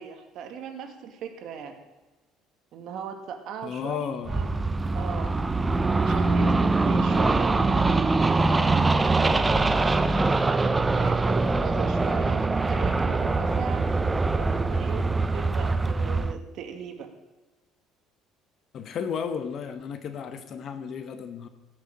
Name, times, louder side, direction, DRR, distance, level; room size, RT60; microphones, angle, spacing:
voice 1, 0.0-1.7 2.7-4.5 4.9-5.3 6.0-10.2 10.9-13.8 14.4-15.0 15.3-17.1, right 7 dB, 55° right, 5 dB, 1.9 m, -38 dB
voice 2, 3.6-4.4 18.7-21.5, left 7 dB, 40° left, 10 dB, 1.0 m, -33 dB
sound 1, 4.3-16.3, right 3 dB, 15° right, 0.6 m, -23 dB
15.5 x 6.6 x 10.0 m, 1.2 s
cardioid pair, 150°, 0 cm